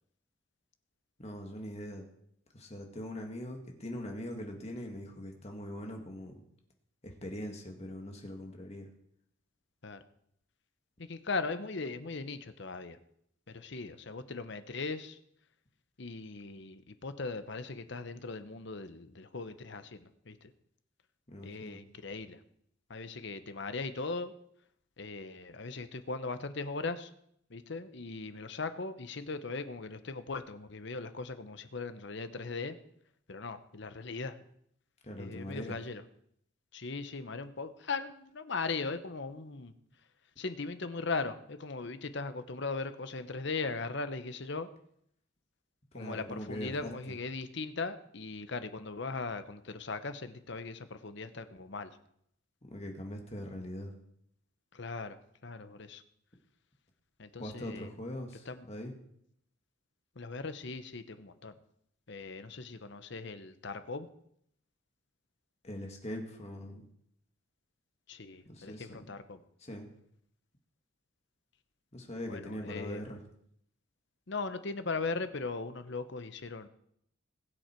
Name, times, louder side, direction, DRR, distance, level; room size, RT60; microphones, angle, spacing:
voice 1, 1.2-2.1 2.5-6.3 7.0-8.9 21.3-21.8 35.0-35.8 45.9-47.1 52.7-53.9 57.4-58.9 65.6-66.9 68.5-69.1 69.6-69.9 71.9-73.2, equal, 30° left, 2 dB, 2.0 m, -42 dB
voice 2, 11.0-13.0 13.5-15.2 16.0-20.5 21.4-22.4 22.9-24.3 25.0-27.1 27.5-32.8 33.3-34.4 35.2-36.0 36.7-39.7 40.4-44.7 45.9-52.0 54.7-56.0 57.2-57.9 58.5-58.7 60.2-61.5 62.1-64.1 68.1-69.4 72.3-73.0 74.3-76.7, left 3 dB, 60° left, 11 dB, 0.9 m, -39 dB
20.5 x 7.8 x 4.6 m, 0.71 s
head